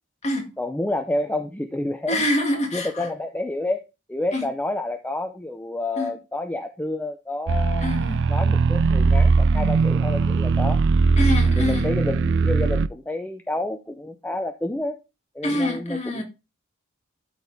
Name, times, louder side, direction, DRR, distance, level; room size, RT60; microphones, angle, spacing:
voice 1, 0.6-2.2 2.7-3.8 4.1-7.9 8.3-10.8 11.6-15.0 15.3-16.2, left 2 dB, 10° left, 0.6 m, -29 dB
voice 2, 2.1-3.1 4.3-4.5 6.0-6.1 7.8-8.3 11.2-11.9 15.4-16.2, left 1 dB, 35° left, 2.1 m, -26 dB
sound 1, 7.5-12.9, right 4 dB, 60° right, 0.4 m, -20 dB
12.0 x 4.5 x 3.5 m
head